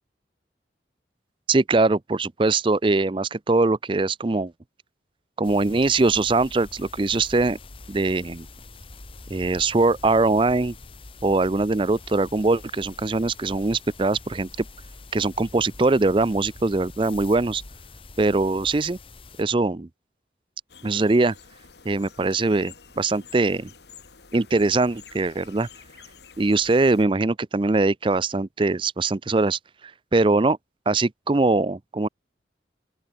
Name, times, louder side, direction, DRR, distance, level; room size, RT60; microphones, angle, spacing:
voice 1, 1.5-4.5 5.4-7.6 7.9-8.5 9.3-10.7 11.2-14.5 15.1-17.6 18.2-19.0 19.4-19.9 20.8-21.3 21.8-23.7 24.3-25.7 26.4-29.6 30.1-30.6 30.9-32.1, right 3 dB, 30° right, 0.5 m, -22 dB
sound 1, 5.4-19.4, left 2 dB, 30° left, 1.2 m, -44 dB
sound 2, 20.7-27.0, left 6 dB, 65° left, 2.0 m, -49 dB
open air
head